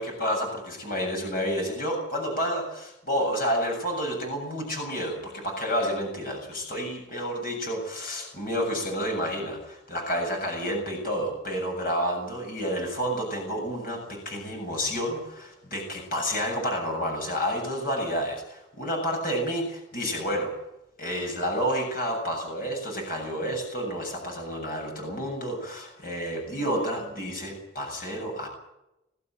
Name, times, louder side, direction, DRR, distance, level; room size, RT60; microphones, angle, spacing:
voice 1, 0.0-20.5 21.0-28.5, equal, 45° left, 2 dB, 7.4 m, -30 dB
22.0 x 15.0 x 9.0 m, 0.90 s
head